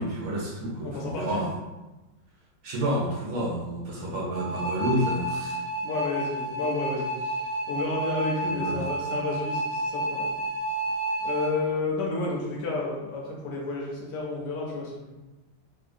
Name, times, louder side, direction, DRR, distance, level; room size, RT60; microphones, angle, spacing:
voice 1, 0.0-1.5 2.6-5.6 8.5-8.9, right 1 dB, 65° right, -4 dB, 1.3 m, -29 dB
voice 2, 0.8-1.4 5.8-10.3 11.2-15.1, left 3 dB, 70° left, -2 dB, 1.3 m, -31 dB
sound 1, 4.3-11.5, right 1 dB, 50° right, 0.6 m, -30 dB
3.7 x 2.7 x 2.5 m, 1.1 s
omnidirectional pair, 2.0 m